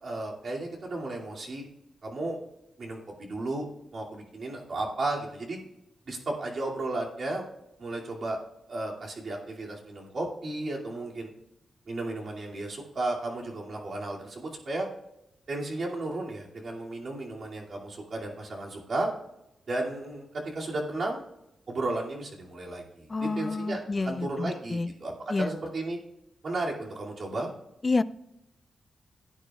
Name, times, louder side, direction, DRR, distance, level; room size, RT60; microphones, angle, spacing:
voice 1, 0.0-1.7 2.0-2.4 2.8-3.7 3.9-5.6 6.1-7.4 7.8-8.4 8.7-11.3 11.9-14.9 15.5-19.1 19.7-21.2 21.7-26.0 26.4-27.5, right 2 dB, 45° right, -3 dB, 2.5 m, -34 dB
voice 2, 23.1-24.9 25.3-25.5 27.8-28.0, left 3 dB, 25° left, 15 dB, 0.3 m, -28 dB
17.0 x 8.9 x 2.4 m, 0.86 s
wide cardioid pair, 165°, 0 cm